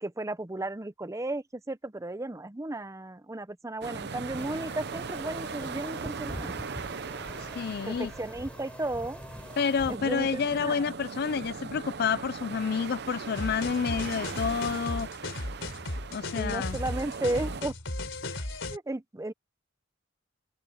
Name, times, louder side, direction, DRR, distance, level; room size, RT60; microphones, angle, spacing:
voice 1, 0.0-6.6 7.9-9.2 9.9-10.9 16.3-17.7 18.7-19.3, right 2 dB, 15° right, 0.7 m, -34 dB
sound 1, 3.8-17.6, right 5 dB, 60° right, 0.7 m, -39 dB
sound 2, 4.4-10.0, equal, 5° left, 4.7 m, -44 dB
voice 2, 7.4-8.1 9.6-15.1 16.1-16.8, left 6 dB, 55° left, 0.4 m, -29 dB
sound 3, 13.4-18.8, left 2 dB, 75° left, 4.0 m, -36 dB
open air
head